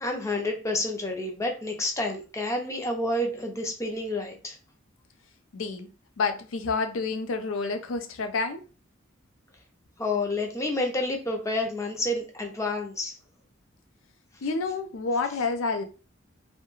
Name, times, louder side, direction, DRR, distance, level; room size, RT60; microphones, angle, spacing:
voice 1, 0.0-4.6 10.0-13.2, left 2 dB, 15° left, 0.4 m, -29 dB
voice 2, 5.5-5.9 6.2-8.6 14.4-15.8, left 4 dB, 80° left, 0.5 m, -29 dB
2.3 x 2.1 x 3.0 m
head